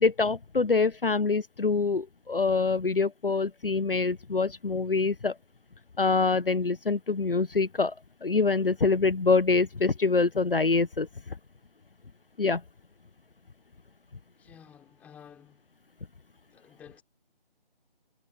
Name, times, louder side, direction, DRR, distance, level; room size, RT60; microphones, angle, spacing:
voice 1, 0.0-5.3 6.0-7.9 8.2-11.1 12.4-12.6, left 4 dB, 65° left, 0.9 m, -25 dB
voice 2, 14.4-15.6 16.5-17.0, left 8 dB, 5° left, 4.6 m, -52 dB
figure-of-eight pair, 155°, 30 cm